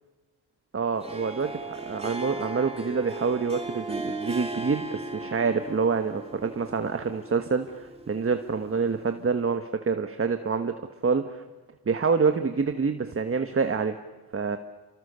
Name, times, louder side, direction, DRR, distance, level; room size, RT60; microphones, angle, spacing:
voice 1, 0.7-11.4 11.9-14.0 14.3-14.6, right 5 dB, 35° right, 8 dB, 1.4 m, -27 dB
Harp, 0.9-9.2, right 2 dB, 15° right, 2.3 m, -37 dB
30.0 x 25.0 x 6.9 m, 1.2 s
wide cardioid pair, 115°, 40 cm